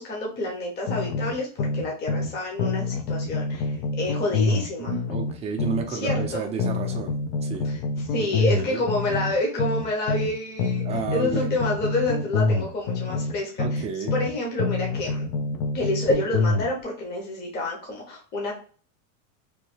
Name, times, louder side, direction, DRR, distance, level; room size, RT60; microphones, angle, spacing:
voice 1, 0.0-4.9 5.9-6.5 7.7-7.8 8.1-10.8 11.1-13.8 14.1-15.3 15.7-18.5, left 2 dB, 25° left, -1 dB, 0.8 m, -28 dB
sound 1, 0.9-2.3 2.6-6.3 6.6-10.3 10.6-14.3 14.6-16.7, left 3 dB, 50° left, 0.4 m, -26 dB
voice 2, 4.8-7.7 8.2-8.8 10.8-11.5 13.6-14.1, right 6 dB, 15° right, 2 dB, 0.4 m, -32 dB
3.1 x 2.1 x 3.1 m, 0.41 s
supercardioid pair, 140°, 39 cm